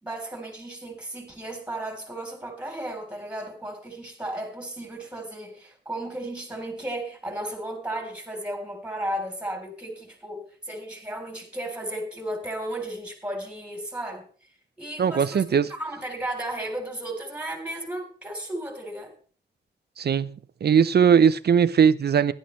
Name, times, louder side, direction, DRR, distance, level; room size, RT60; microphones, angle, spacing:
voice 1, 0.0-14.3 14.8-15.4 15.7-19.1, right 1 dB, 5° right, 3.4 m, -34 dB
voice 2, 15.0-15.7 20.0-20.3 20.6-22.3, right 7 dB, 60° right, 0.6 m, -19 dB
16.5 x 11.0 x 3.2 m
wide cardioid pair, 155°, 19 cm